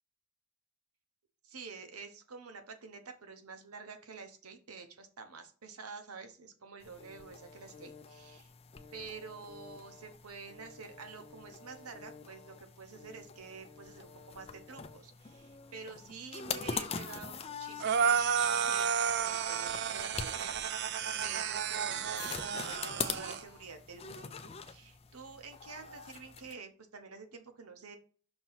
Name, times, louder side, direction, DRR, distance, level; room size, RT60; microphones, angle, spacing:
voice 1, 1.4-8.5 8.9-28.0, right 4 dB, 90° right, 6 dB, 1.0 m, -49 dB
sound 1, 6.8-26.5, left 5 dB, 25° left, 0.4 m, -44 dB
sound 2, 17.8-23.4, right 7 dB, 50° right, 0.4 m, -32 dB
6.0 x 2.9 x 5.6 m, 0.41 s
head